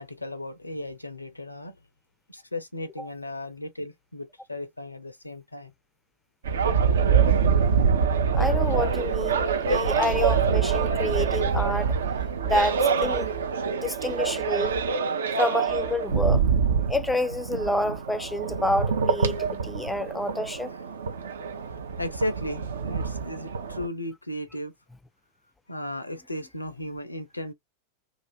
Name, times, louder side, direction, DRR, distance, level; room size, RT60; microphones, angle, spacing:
voice 1, 0.0-1.8 2.3-5.7 20.7-20.8 21.6-24.7 25.7-27.5, left 1 dB, 85° left, 0.4 m, -35 dB
sound 1, 6.4-23.9, right 6 dB, 65° right, 0.5 m, -25 dB
voice 2, 8.3-12.0 12.4-13.3 13.8-14.7 15.4-16.4 16.9-20.7, left 1 dB, 5° left, 0.4 m, -28 dB
2.4 x 2.4 x 2.9 m
figure-of-eight pair, 90°, 0 cm